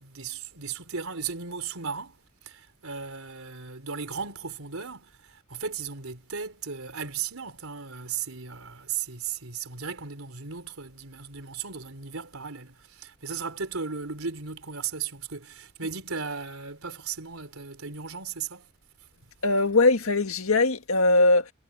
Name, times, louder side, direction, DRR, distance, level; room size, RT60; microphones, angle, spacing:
voice 1, 0.0-18.7, right 6 dB, 75° right, 3.7 m, -36 dB
voice 2, 19.4-21.5, left 2 dB, 75° left, 1.9 m, -21 dB
head